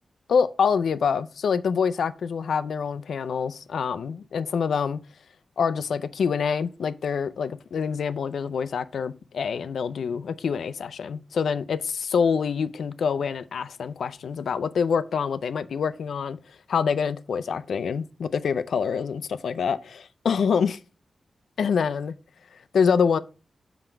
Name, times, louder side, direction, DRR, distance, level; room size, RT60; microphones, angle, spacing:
voice 1, 0.3-5.0 5.6-11.8 12.1-16.4 16.7-20.8 21.6-22.2 22.7-23.2, left 6 dB, 85° left, 0.4 m, -26 dB
5.8 x 5.0 x 4.5 m
cardioid pair, 75°, 0 cm